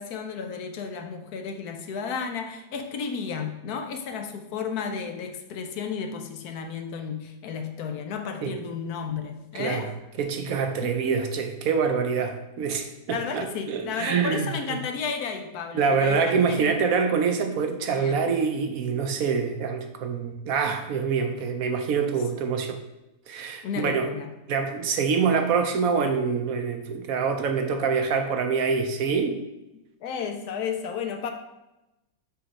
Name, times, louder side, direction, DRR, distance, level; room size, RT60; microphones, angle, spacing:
voice 1, 0.0-9.9 10.8-11.2 13.1-16.7 18.0-18.2 23.6-24.3 30.0-31.3, left 6 dB, 70° left, 6 dB, 1.1 m, -33 dB
voice 2, 9.5-9.9 10.2-14.8 15.7-22.8 23.3-24.1 24.5-29.4, right 5 dB, 65° right, 5 dB, 0.9 m, -25 dB
6.8 x 3.1 x 5.2 m, 0.97 s
omnidirectional pair, 1.9 m